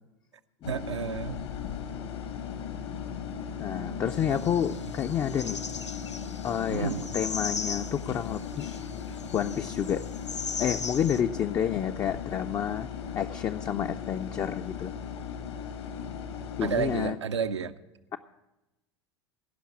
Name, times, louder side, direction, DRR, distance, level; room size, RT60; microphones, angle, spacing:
sound 1, 0.6-17.1, left 7 dB, 70° left, 1.3 m, -37 dB
voice 1, 0.7-1.4 4.3-4.4 6.7-7.1 16.6-17.7, right 6 dB, 80° right, 11 dB, 0.6 m, -31 dB
voice 2, 3.6-5.6 6.4-8.8 9.3-10.0 10.6-12.9 13.1-14.9 16.6-17.2, left 9 dB, 25° left, 6 dB, 0.4 m, -29 dB
sound 2, 4.1-11.2, left 5 dB, 90° left, 0.5 m, -38 dB
16.5 x 5.8 x 8.4 m, 1.0 s
figure-of-eight pair, 80°, 15 cm